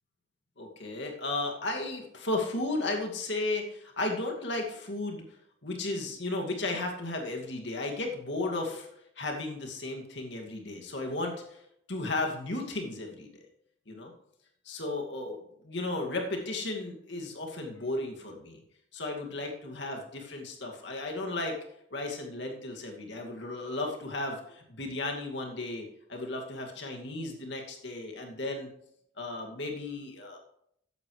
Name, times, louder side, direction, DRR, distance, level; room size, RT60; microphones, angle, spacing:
voice 1, 0.6-5.2 5.6-8.9 9.2-11.6 11.9-13.4 13.9-14.1 14.7-18.6 18.9-21.6 21.9-28.7 29.2-30.4, left 2 dB, 70° left, 1 dB, 2.4 m, -34 dB
14.0 x 10.5 x 3.3 m, 0.73 s
head